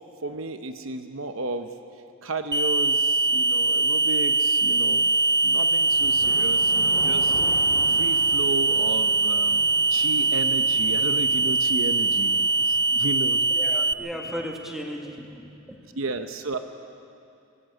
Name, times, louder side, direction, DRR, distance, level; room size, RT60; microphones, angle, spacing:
voice 1, 0.2-1.7 2.2-5.1 5.4-7.4 7.9-13.4 14.0-14.1 15.9-16.6, right 2 dB, 65° right, 8 dB, 0.9 m, -33 dB
sound 1, 2.5-13.9, right 3 dB, 20° right, 0.6 m, -22 dB
sound 2, 4.9-12.8, equal, 30° left, 6.3 m, -42 dB
voice 2, 13.3-15.9, equal, ahead, 0 dB, 2.0 m, -36 dB
20.0 x 17.5 x 8.0 m, 2.5 s
head